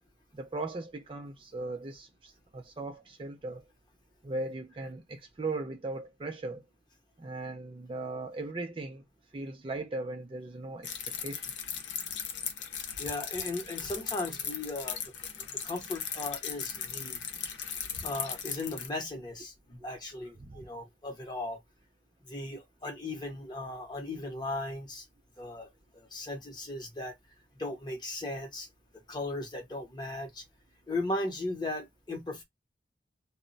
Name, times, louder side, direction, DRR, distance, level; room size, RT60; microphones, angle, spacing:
voice 1, 0.3-3.6 4.2-6.6 7.2-9.0 9.3-10.9 11.2-11.4 20.4-20.6, right 2 dB, 30° right, 0.3 m, -38 dB
sound 1, 10.8-18.9, left 7 dB, 90° left, 0.6 m, -37 dB
voice 2, 13.0-15.0 15.5-17.2 18.0-21.6 22.2-25.0 25.4-27.1 27.6-28.7 29.1-30.4 30.9-32.4, left 2 dB, 25° left, 0.7 m, -37 dB
2.1 x 2.0 x 3.8 m
head